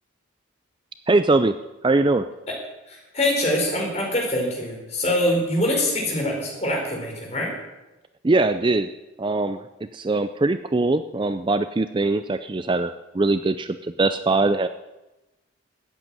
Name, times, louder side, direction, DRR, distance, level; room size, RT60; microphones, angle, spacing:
voice 1, 1.1-1.5 1.8-2.3 8.2-8.9 9.2-9.7 9.9-14.7, right 2 dB, 25° right, 11 dB, 0.4 m, -21 dB
voice 2, 2.9-7.5, left 1 dB, 35° left, -1 dB, 4.7 m, -24 dB
13.5 x 8.8 x 9.0 m, 1.0 s
head